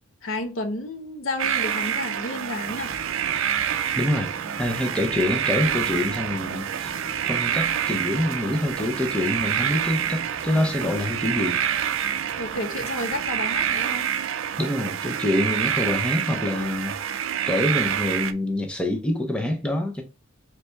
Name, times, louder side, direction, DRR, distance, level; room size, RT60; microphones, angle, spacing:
voice 1, 0.2-2.9 12.4-14.1, left 2 dB, 75° left, 0.9 m, -31 dB
sound 1, 1.4-18.3, right 9 dB, 75° right, 0.4 m, -27 dB
Crackle, 2.6-14.1, equal, 10° right, 0.9 m, -45 dB
voice 2, 3.9-4.3 4.6-6.9 7.2-11.6 14.6-17.0 17.5-20.0, left 1 dB, 5° left, 0.6 m, -26 dB
4.2 x 3.3 x 3.3 m
head